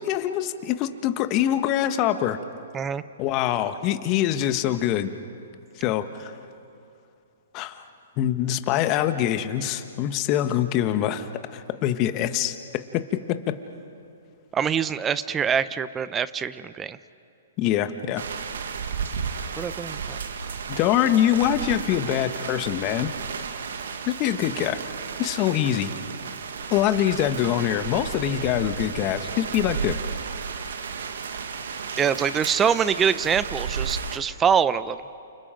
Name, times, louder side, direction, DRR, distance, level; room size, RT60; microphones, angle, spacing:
voice 1, 0.0-2.4 3.2-5.1 5.8-6.3 7.5-7.8 8.2-13.5 17.6-18.2 20.7-23.1 24.1-24.8 25.2-25.9 26.7-30.0, left 11 dB, 35° left, 9 dB, 1.4 m, -24 dB
voice 2, 14.5-17.0 19.6-20.2 32.0-35.0, right 7 dB, 15° right, 16 dB, 0.7 m, -24 dB
sound 1, 18.2-34.2, right 6 dB, 70° right, 1.8 m, -33 dB
30.0 x 29.0 x 5.2 m, 2.6 s
hypercardioid pair, 130°, 0 cm